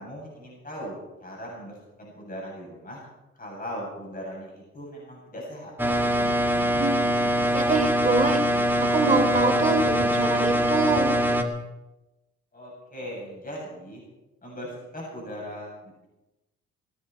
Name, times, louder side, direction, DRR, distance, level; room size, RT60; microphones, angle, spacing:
voice 1, 0.0-3.0 3.4-5.7 12.5-14.0 14.4-15.7, equal, 30° left, -3 dB, 7.7 m, -39 dB
sound 1, 5.8-11.4, equal, 5° right, 1.9 m, -23 dB
voice 2, 7.5-8.4 8.9-11.2, right 3 dB, 25° right, 3 dB, 3.5 m, -25 dB
18.0 x 13.5 x 5.8 m, 0.98 s
cardioid pair, 90°, 30 cm